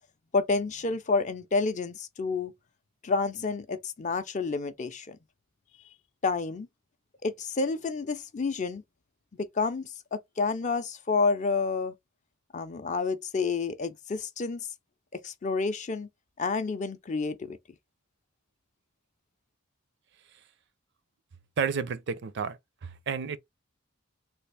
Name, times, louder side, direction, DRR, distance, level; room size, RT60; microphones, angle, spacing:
voice 1, 0.3-2.5 3.0-5.2 6.2-6.7 7.2-8.8 9.3-11.9 12.5-14.7 15.1-16.1 16.4-17.6, left 4 dB, 35° left, 0.4 m, -29 dB
voice 2, 21.6-23.4, right 6 dB, 55° right, 0.4 m, -31 dB
3.4 x 2.4 x 3.3 m
head